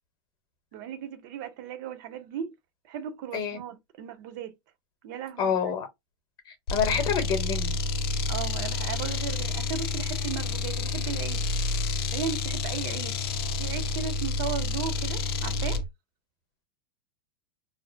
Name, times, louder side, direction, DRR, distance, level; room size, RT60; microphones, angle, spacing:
voice 1, 0.7-2.5 2.8-4.5 5.0-5.5 8.3-11.5 11.9-15.8, right 8 dB, 50° right, 0.6 m, -36 dB
voice 2, 5.4-5.9 6.7-7.8, left 7 dB, 30° left, 0.9 m, -27 dB
sound 1, 6.7-15.9, left 3 dB, 75° left, 0.5 m, -29 dB
2.5 x 2.0 x 2.4 m
supercardioid pair, 140°, 13 cm